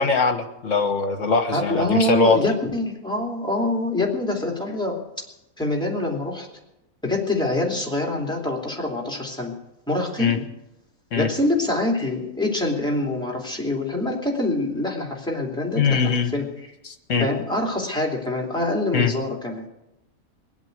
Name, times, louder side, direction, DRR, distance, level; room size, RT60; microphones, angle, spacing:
voice 1, 0.0-2.4 10.2-10.4 11.1-11.3 15.8-16.3 16.8-17.3 18.9-19.1, left 4 dB, 55° left, 8 dB, 1.6 m, -21 dB
voice 2, 1.5-5.0 5.6-6.5 7.0-9.5 9.9-10.4 11.1-16.5 17.2-19.7, left 1 dB, 5° left, -1 dB, 3.0 m, -25 dB
21.5 x 8.2 x 8.1 m, 0.90 s
omnidirectional pair, 1.5 m